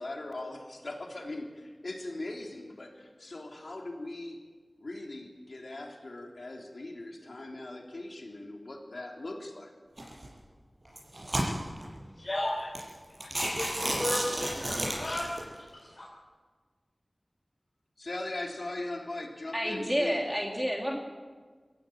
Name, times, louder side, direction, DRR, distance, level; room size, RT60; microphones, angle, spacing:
voice 1, 0.0-4.4 4.8-9.7 18.0-20.3, left 2 dB, 75° left, 1 dB, 3.6 m, -40 dB
sound 1, 10.0-10.3 10.9-11.8 12.4-12.5 12.8-12.9 13.2-15.4, right 1 dB, 50° right, 7.6 m, -31 dB
voice 2, 12.2-12.7 13.3-15.3 15.9-16.1, left 1 dB, 55° left, -3 dB, 4.2 m, -34 dB
voice 3, 19.5-21.0, equal, 5° right, 0 dB, 2.4 m, -29 dB
23.0 x 16.0 x 8.8 m, 1.5 s
wide cardioid pair, 65°, 0 cm